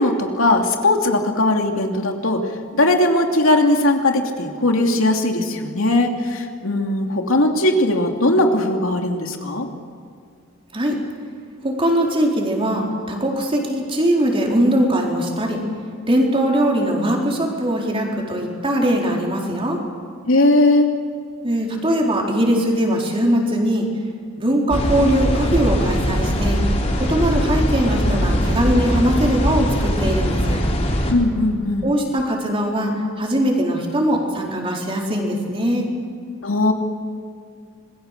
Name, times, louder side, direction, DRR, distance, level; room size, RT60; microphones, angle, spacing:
voice 1, 0.0-2.5 2.7-9.7 20.3-20.9 31.1-31.9 36.4-36.7, left 2 dB, 75° left, 3 dB, 2.6 m, -18 dB
voice 2, 11.6-15.6 16.1-19.8 21.4-23.9 24.4-26.6 27.0-30.6 31.8-35.9, equal, 25° right, -1 dB, 4.2 m, -20 dB
sound 1, 24.7-31.1, equal, 30° left, 3.4 m, -21 dB
26.5 x 21.5 x 6.8 m, 2.3 s
head